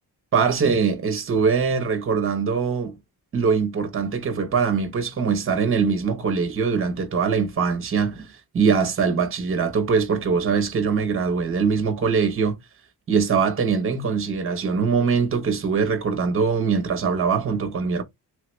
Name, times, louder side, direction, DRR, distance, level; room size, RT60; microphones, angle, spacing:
voice 1, 0.3-3.0 3.3-12.6 13.1-18.0, right 5 dB, 30° right, 0.7 m, -22 dB
3.2 x 2.1 x 3.0 m
wide cardioid pair, 145°, 41 cm